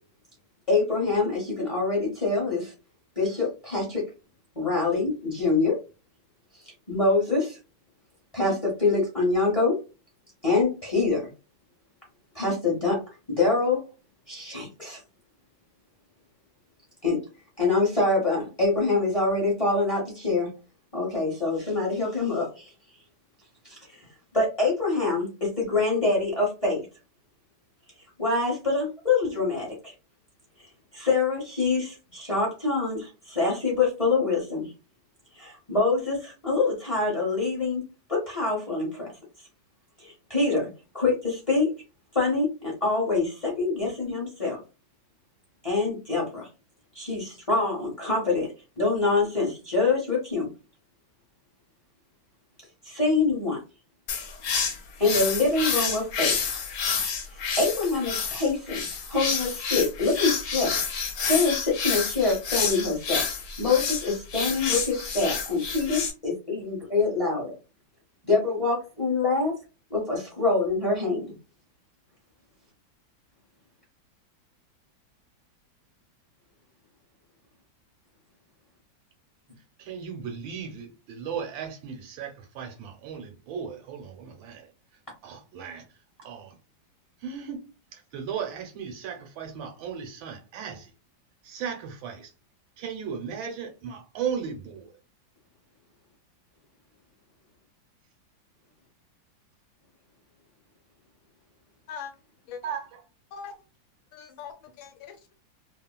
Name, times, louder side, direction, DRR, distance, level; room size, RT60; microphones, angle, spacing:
voice 1, 0.7-2.7 3.2-4.0 4.6-5.8 6.6-7.6 8.3-9.8 10.4-11.3 12.3-13.0 13.3-13.8 14.3-15.0 17.0-17.2 17.6-20.5 20.9-22.7 23.6-24.0 24.3-26.9 28.2-29.9 30.9-34.7 35.3-37.8 38.1-39.1 40.0-40.7 40.9-41.8 42.1-44.6 45.6-46.5 46.9-50.5 52.8-53.6 55.0-56.5 57.3-60.8 61.2-63.2 63.6-67.5 68.2-69.5 69.9-71.3, left 3 dB, 35° left, 0.5 m, -25 dB
sound 1, 54.1-66.1, left 5 dB, 65° left, 1.2 m, -29 dB
voice 2, 79.8-84.7 85.2-85.8 86.2-86.6 87.2-90.9 91.4-92.3 92.8-94.9 102.6-103.0, right 7 dB, 80° right, 1.6 m, -36 dB
voice 3, 104.1-105.3, left 6 dB, 80° left, 1.5 m, -41 dB
3.3 x 2.4 x 2.2 m
omnidirectional pair, 2.1 m